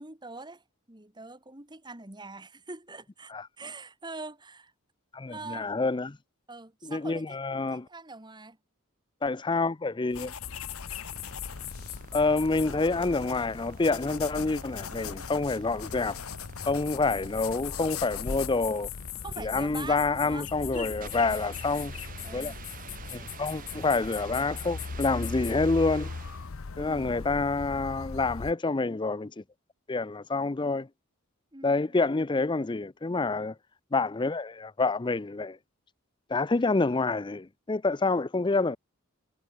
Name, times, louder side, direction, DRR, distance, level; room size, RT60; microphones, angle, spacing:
voice 1, 0.0-4.7 5.3-5.7 6.5-8.6 19.2-21.2 22.2-22.6 26.8-27.2 31.5-32.0, right 3 dB, 20° right, 2.0 m, -44 dB
voice 2, 5.1-6.2 6.8-7.9 9.2-10.3 12.1-16.2 16.6-18.9 19.4-21.9 22.3-22.5 23.1-26.1 26.8-29.4 29.9-30.9 31.6-33.5 33.9-35.6 36.3-38.8, left 3 dB, 20° left, 0.5 m, -27 dB
sound 1, 10.1-18.5, left 8 dB, 85° left, 1.5 m, -42 dB
sound 2, 10.4-28.5, left 5 dB, 70° left, 0.7 m, -39 dB
sound 3, 10.7-26.6, right 6 dB, 40° right, 0.8 m, -49 dB
head